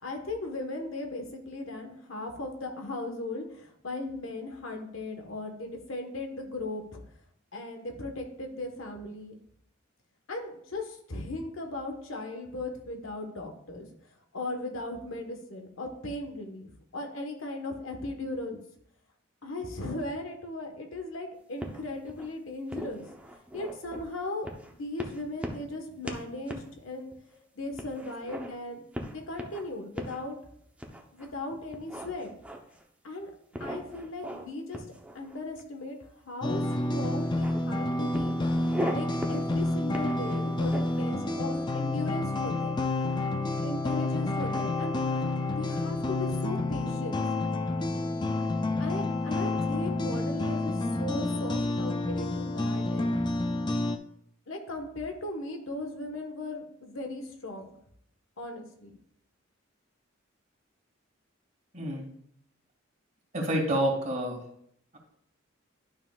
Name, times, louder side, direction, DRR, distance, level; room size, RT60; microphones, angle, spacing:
voice 1, 0.0-7.0 7.5-9.4 10.3-13.9 14.3-18.6 19.4-23.0 23.5-27.1 27.5-28.8 29.1-30.4 31.1-32.3 33.0-33.3 33.6-34.8 35.1-36.0 36.3-38.4 38.9-42.8 43.6-45.0 45.6-47.2 48.8-53.2 54.5-57.8 58.4-59.0, left 2 dB, 85° left, 4 dB, 1.3 m, -37 dB
sound 1, 21.6-22.3 22.7-24.0 24.5-24.7 25.0-25.8 26.1-26.2 26.5-26.7 27.1-27.2 27.8-28.5 28.9-29.6 30.0-30.2 30.8-31.3 31.7-32.8 33.5-34.5 34.7-35.6 36.6-36.8 37.1-37.6 38.1-38.9 39.2-39.4 39.9-41.0, equal, 5° right, 0.8 m, -38 dB
sound 2, 36.4-54.0, left 2 dB, 20° left, 0.4 m, -29 dB
voice 2, 63.3-64.4, right 1 dB, 40° right, -3 dB, 2.2 m, -28 dB
11.5 x 5.6 x 2.4 m, 0.69 s
head